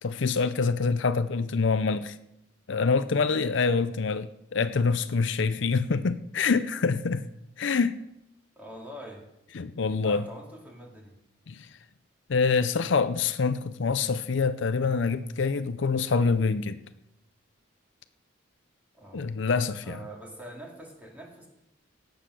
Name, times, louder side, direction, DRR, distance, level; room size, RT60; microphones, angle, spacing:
voice 1, 0.0-2.1 2.7-7.2 7.6-8.0 9.6-10.2 11.5-11.7 12.3-16.8 19.1-20.0, left 4 dB, 65° left, 0.5 m, -26 dB
voice 2, 8.6-9.2 10.0-11.1 19.0-19.3 19.8-21.5, right 1 dB, 10° right, 2.5 m, -44 dB
16.5 x 7.9 x 6.4 m
head